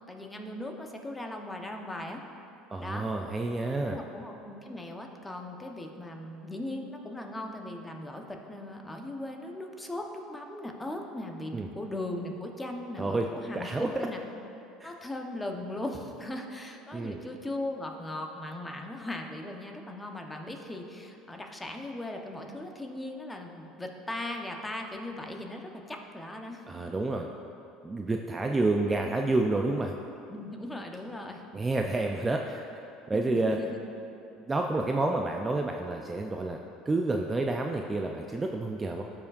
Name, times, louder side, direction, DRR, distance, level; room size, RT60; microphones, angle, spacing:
voice 1, 0.1-2.2 2.8-3.1 3.9-13.7 14.0-14.2 14.8-26.6 30.3-31.5 33.1-33.8, left 1 dB, 15° left, 2 dB, 1.0 m, -38 dB
voice 2, 2.7-4.0 11.5-11.7 13.0-13.3 13.6-13.9 14.8-14.9 16.9-17.2 26.7-27.3 27.8-30.0 31.5-32.6 33.1-33.6 34.5-36.6 36.9-39.0, right 2 dB, 20° right, 2 dB, 0.4 m, -29 dB
14.0 x 4.8 x 2.5 m, 2.7 s
hypercardioid pair, 75°, 0 cm